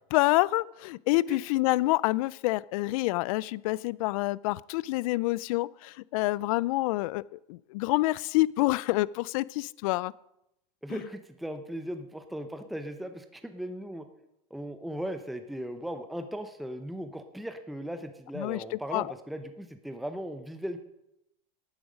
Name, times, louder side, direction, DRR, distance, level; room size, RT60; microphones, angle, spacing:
voice 1, 0.1-10.1 18.4-18.6 18.9-19.1, left 20 dB, 65° left, 22 dB, 0.4 m, -27 dB
voice 2, 10.8-14.0 14.5-20.8, equal, ahead, 8 dB, 0.7 m, -37 dB
12.0 x 9.2 x 5.1 m, 0.85 s
supercardioid pair, 135°, 19 cm